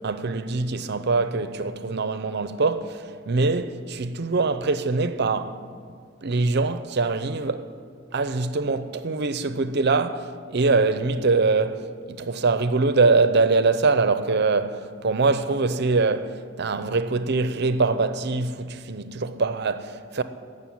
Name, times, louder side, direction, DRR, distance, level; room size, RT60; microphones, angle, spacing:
voice 1, 0.0-5.6 6.2-7.7 8.1-20.2, right 3 dB, 55° right, 0.7 m, -23 dB
15.5 x 6.7 x 9.2 m
head